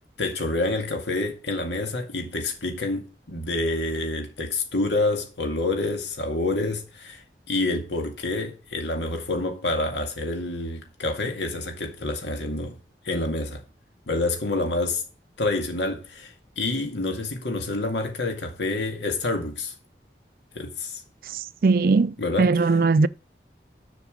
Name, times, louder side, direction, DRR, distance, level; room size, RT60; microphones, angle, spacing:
voice 1, 0.2-12.8 13.0-13.6 14.1-15.0 15.4-19.7 20.5-21.0 22.2-22.7, left 2 dB, 90° left, 2.2 m, -28 dB
voice 2, 21.6-23.1, right 4 dB, 55° right, 0.4 m, -19 dB
7.1 x 6.0 x 7.4 m
head